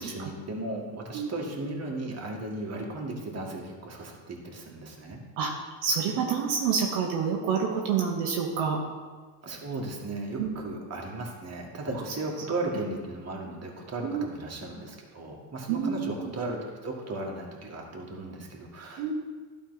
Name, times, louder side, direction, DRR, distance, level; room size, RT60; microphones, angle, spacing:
voice 1, 0.0-5.2 9.4-19.1, right 2 dB, 30° right, -1 dB, 1.9 m, -36 dB
voice 2, 5.8-8.8 10.4-10.5 14.0-14.3 15.7-16.3 19.0-19.1, right 6 dB, 75° right, -1 dB, 1.2 m, -28 dB
11.5 x 4.2 x 4.1 m, 1.4 s
supercardioid pair, 75°, 47 cm